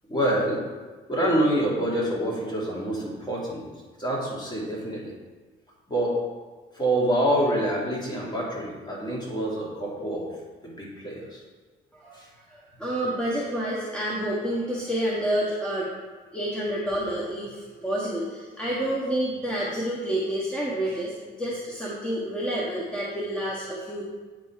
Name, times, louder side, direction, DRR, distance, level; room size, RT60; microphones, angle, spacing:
voice 1, 0.1-0.6 1.1-3.7 4.0-5.1 5.9-6.2 6.7-10.3 10.6-11.4 12.1-12.3, right 1 dB, 20° left, -4 dB, 2.5 m, -26 dB
voice 2, 12.8-16.0 16.3-17.5 17.8-21.1 21.4-24.0, right 1 dB, 5° left, -6 dB, 1.4 m, -28 dB
8.9 x 4.2 x 4.6 m, 1.3 s
cardioid pair, 90°, 20 cm